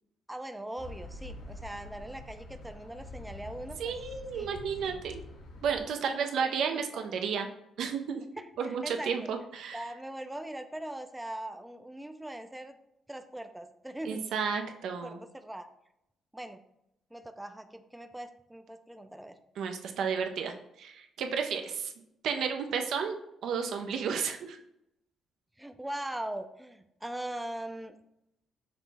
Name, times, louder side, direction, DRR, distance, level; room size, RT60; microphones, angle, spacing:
voice 1, 0.3-4.0 4.3-4.5 4.8-5.0 6.0-6.1 6.4-7.2 8.4-9.3 9.7-12.8 13.1-14.2 15.0-15.7 16.3-16.6 17.1-19.4 25.6-28.0, right 1 dB, 10° right, 8 dB, 0.3 m, -41 dB
sound 1, 0.8-5.8, left 1 dB, 85° left, 0.9 m, -46 dB
voice 2, 3.8-5.2 5.6-7.5 7.8-8.2 8.6-9.9 14.1-15.2 19.6-21.9 22.2-23.2 23.4-24.6, right 6 dB, 75° right, 5 dB, 0.4 m, -32 dB
5.7 x 2.0 x 3.3 m, 0.82 s
cardioid pair, 90°, 0 cm